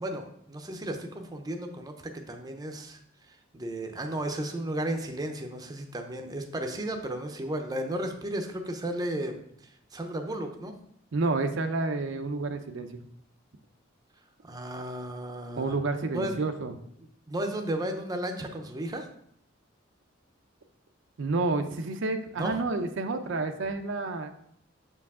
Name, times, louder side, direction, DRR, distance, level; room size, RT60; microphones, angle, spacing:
voice 1, 0.0-3.0 3.3-9.4 9.9-10.7 14.4-15.7 16.1-16.4 17.3-19.1 22.4-22.6, right 1 dB, 20° right, 4 dB, 0.6 m, -34 dB
voice 2, 11.1-13.0 15.6-16.7 21.2-24.3, right 3 dB, 65° right, 7 dB, 0.5 m, -29 dB
6.5 x 4.6 x 3.6 m, 0.68 s
head